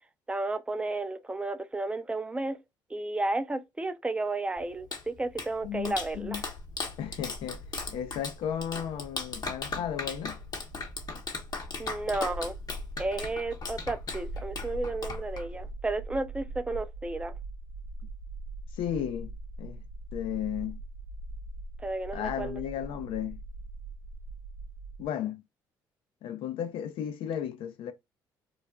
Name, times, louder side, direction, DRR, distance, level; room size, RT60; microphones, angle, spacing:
voice 1, 0.3-2.6 2.9-6.4 11.8-12.5 13.0-17.3 21.8-22.6, right 2 dB, 10° right, 0.4 m, -32 dB
Clapping, 4.6-15.7, left 4 dB, 45° left, 0.8 m, -38 dB
voice 2, 5.6-6.4 7.0-7.6 7.9-10.4 18.8-19.3 19.6-19.8 20.1-20.8 22.1-23.4 25.0-25.4 26.2-27.9, left 10 dB, 70° left, 0.5 m, -34 dB
sound 1, 5.6-25.1, right 1 dB, 85° right, 0.6 m, -42 dB
2.3 x 2.1 x 3.6 m
supercardioid pair, 65°, 9 cm